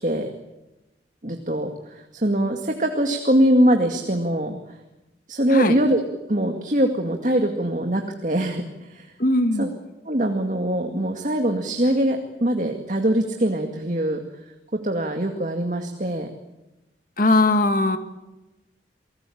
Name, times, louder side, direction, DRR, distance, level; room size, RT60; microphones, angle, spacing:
voice 1, 1.2-4.6 5.3-6.0 6.3-9.1 9.5-9.7 10.1-14.2 14.8-16.3, right 1 dB, 45° right, 4 dB, 2.1 m, -22 dB
voice 2, 9.2-9.7 17.2-18.0, left 2 dB, 50° left, 8 dB, 2.2 m, -19 dB
29.0 x 18.5 x 8.7 m, 1.0 s
head